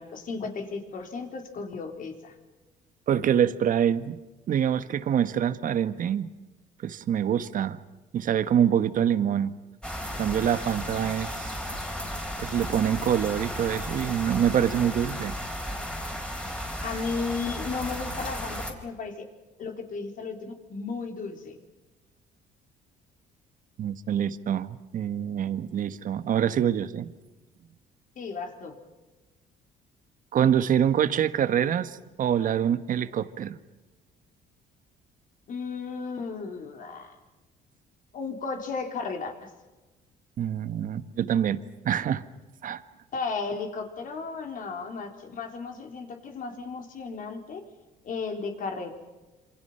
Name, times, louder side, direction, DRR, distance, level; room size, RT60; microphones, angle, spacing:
voice 1, 0.0-2.3 16.8-19.3 19.6-21.6 28.2-28.8 35.5-37.2 38.1-39.5 43.1-47.6 48.0-48.9, left 4 dB, 50° left, 5 dB, 4.2 m, -34 dB
voice 2, 3.1-4.2 4.5-6.3 6.8-7.8 8.1-9.5 10.2-11.6 12.4-15.3 23.8-27.1 30.3-33.5 40.4-42.2 42.6-42.8, right 9 dB, 50° right, 12 dB, 1.4 m, -25 dB
sound 1, 9.8-18.7, equal, 5° left, 4.8 m, -34 dB
27.5 x 26.5 x 5.7 m, 1.1 s
cardioid pair, 110°, 17 cm